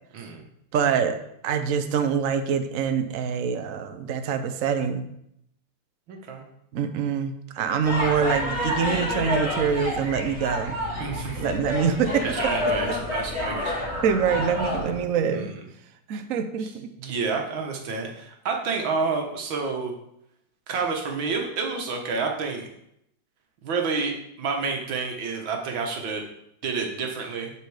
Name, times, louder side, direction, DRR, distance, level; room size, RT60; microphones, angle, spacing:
voice 1, 0.7-1.2 1.4-5.1 6.7-10.8 11.4-12.5 14.0-15.5 16.1-16.9, right 7 dB, 60° right, 8 dB, 0.8 m, -25 dB
voice 2, 6.1-6.4 11.0-11.3 12.2-13.8 15.3-15.6 16.6-16.7 17.0-19.9 20.7-22.7 23.6-26.2 26.6-27.5, right 4 dB, 80° right, 2 dB, 2.0 m, -29 dB
sound 1, 7.8-15.0, left 1 dB, 5° right, 3.4 m, -29 dB
10.0 x 4.4 x 4.8 m, 0.77 s
omnidirectional pair, 2.1 m